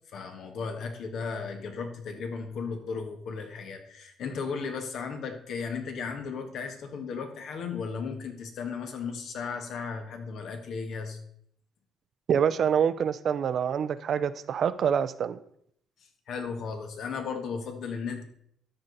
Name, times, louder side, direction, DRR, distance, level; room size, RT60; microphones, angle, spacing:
voice 1, 0.1-11.2 16.3-18.2, left 5 dB, 70° left, 5 dB, 1.6 m, -35 dB
voice 2, 12.3-15.4, right 8 dB, 60° right, 14 dB, 0.5 m, -26 dB
13.0 x 5.1 x 4.1 m, 0.68 s
cardioid pair, 90°, 0 cm